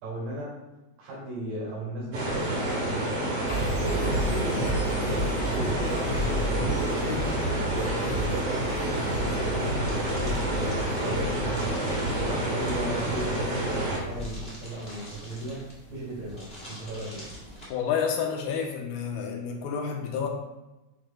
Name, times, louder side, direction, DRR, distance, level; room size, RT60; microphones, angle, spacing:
voice 1, 0.0-0.6 1.0-3.3 3.7-5.1 5.3-10.6 11.0-17.3, right 1 dB, 70° right, -6 dB, 4.3 m, -36 dB
sound 1, 2.1-14.0, right 1 dB, 55° right, 3.1 m, -28 dB
sound 2, 3.5-14.4, equal, 55° left, 1.3 m, -33 dB
sound 3, 9.8-17.7, equal, 25° left, 1.4 m, -45 dB
voice 2, 17.7-20.3, left 7 dB, 75° left, 1 dB, 2.6 m, -29 dB
7.8 x 6.7 x 2.2 m, 1.0 s
omnidirectional pair, 4.8 m